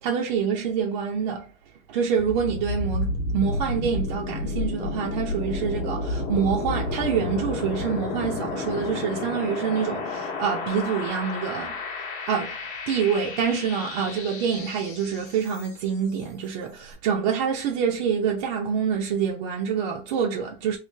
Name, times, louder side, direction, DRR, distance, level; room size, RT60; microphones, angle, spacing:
voice 1, 0.0-1.5 1.9-11.7 12.3-12.6 12.9-20.8, right 7 dB, 40° right, 0.5 m, -26 dB
sound 1, 2.2-16.0, left 2 dB, 35° left, 0.9 m, -31 dB
3.2 x 2.4 x 3.3 m
supercardioid pair, 155°, 34 cm